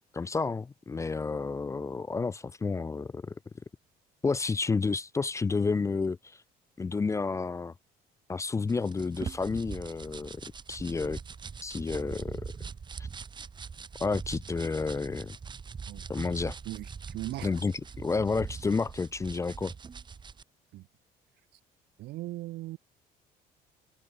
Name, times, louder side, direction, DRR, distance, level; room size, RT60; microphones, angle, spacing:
voice 1, 0.1-3.3 4.2-6.2 6.8-7.7 8.3-10.4 10.7-11.2 11.6-12.4 14.0-15.4 16.1-16.6 17.4-17.7 18.0-19.7, left 4 dB, 20° left, 0.4 m, -30 dB
sound 1, 8.7-20.4, right 5 dB, 25° right, 0.9 m, -42 dB
voice 2, 16.6-17.7 20.7-20.9 22.0-22.8, right 17 dB, 75° right, 0.7 m, -39 dB
cardioid pair, 110°, 17 cm